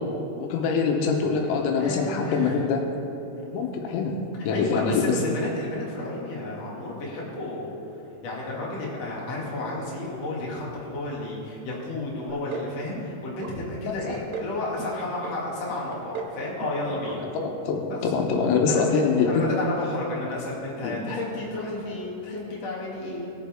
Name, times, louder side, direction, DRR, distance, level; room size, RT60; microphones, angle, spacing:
voice 1, 0.4-2.9 3.5-4.2 4.5-5.2 14.1-14.2 17.4-19.4 20.8-21.0, left 5 dB, 90° left, 2 dB, 3.8 m, -24 dB
voice 2, 1.8-2.6 3.3-3.5 4.5-7.7 8.2-17.3 17.9-18.0 18.7-23.3, left 2 dB, 45° left, -5 dB, 2.3 m, -32 dB
sound 1, 12.3-12.7 13.0-13.5 13.9-14.5 14.8-15.4 15.7-16.4 16.6-16.8 17.1-17.2 17.5-17.6, right 5 dB, 75° right, 2.5 m, -36 dB
20.5 x 7.1 x 3.6 m, 2.9 s
omnidirectional pair, 6.0 m